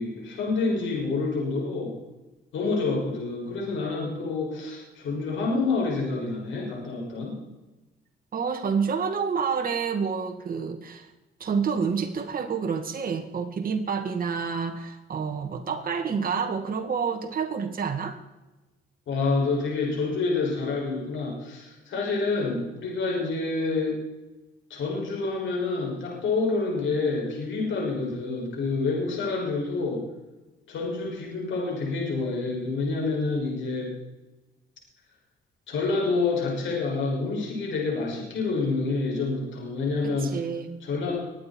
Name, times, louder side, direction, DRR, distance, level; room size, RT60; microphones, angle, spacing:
voice 1, 0.0-1.9 2.5-7.4 19.1-24.0 24.7-30.0 30.7-33.9 35.7-40.3 40.8-41.2, left 3 dB, 70° left, -2 dB, 6.2 m, -28 dB
voice 2, 8.3-11.1 11.4-18.2 40.0-40.8, right 6 dB, 45° right, 4 dB, 1.9 m, -28 dB
22.5 x 9.3 x 4.5 m, 1.1 s
cardioid pair, 90°, 20 cm